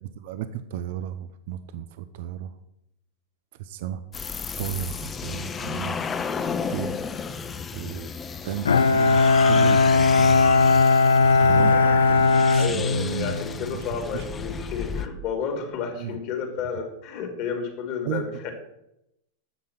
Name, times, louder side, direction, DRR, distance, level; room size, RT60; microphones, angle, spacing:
voice 1, 0.0-2.5 3.6-4.0 4.6-6.0 6.7-7.0 7.7-8.1 8.4-10.8 11.2-14.3 15.9-16.2 18.0-18.5, right 10 dB, 60° right, 11 dB, 0.7 m, -34 dB
sound 1, 4.1-15.1, left 6 dB, 25° left, 0.9 m, -33 dB
Bowed string instrument, 8.7-13.5, left 3 dB, 85° left, 0.5 m, -18 dB
voice 2, 12.6-18.5, left 6 dB, 50° left, 4 dB, 3.3 m, -31 dB
10.0 x 7.4 x 5.9 m, 0.82 s
hypercardioid pair, 100°, 0 cm